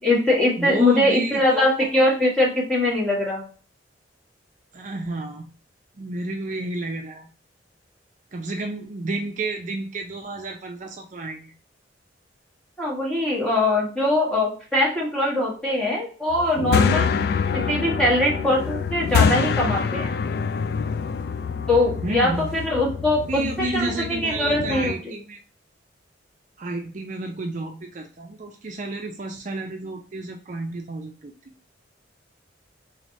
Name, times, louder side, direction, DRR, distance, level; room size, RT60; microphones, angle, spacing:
voice 1, 0.0-3.4 12.8-17.1 17.5-20.1 21.7-24.9, left 1 dB, 5° left, -4 dB, 1.4 m, -22 dB
voice 2, 0.6-1.9 4.7-5.5 6.0-7.3 8.3-11.5 22.0-22.5 23.3-25.4 26.6-31.5, right 2 dB, 45° right, 2 dB, 0.5 m, -31 dB
sound 1, 16.3-24.9, left 6 dB, 55° left, 0.3 m, -25 dB
4.0 x 3.2 x 2.6 m, 0.40 s
head